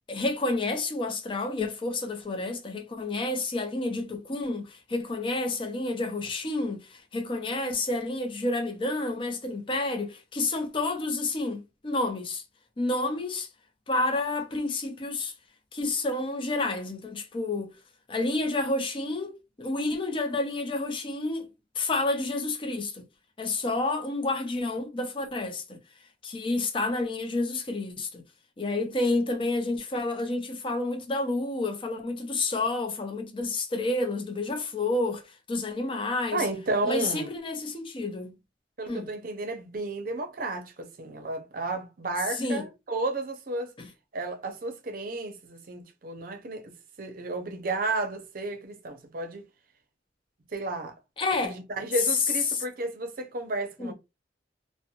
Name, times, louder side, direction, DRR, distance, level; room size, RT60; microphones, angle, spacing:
voice 1, 0.1-12.4 12.8-13.5 13.9-15.3 15.7-17.7 18.1-21.5 21.8-23.0 23.4-25.8 26.2-28.2 28.6-36.5 36.8-38.4 38.9-39.1 42.4-42.7 43.8-43.9 51.2-51.6 52.0-52.2 52.5-52.6 53.8-53.9, left 2 dB, 30° left, 0.4 m, -29 dB
voice 2, 36.3-37.3 38.8-43.7 44.1-46.7 47.0-49.4 50.5-50.9 51.4-53.9, right 2 dB, 50° right, 0.6 m, -32 dB
2.5 x 2.1 x 2.8 m
head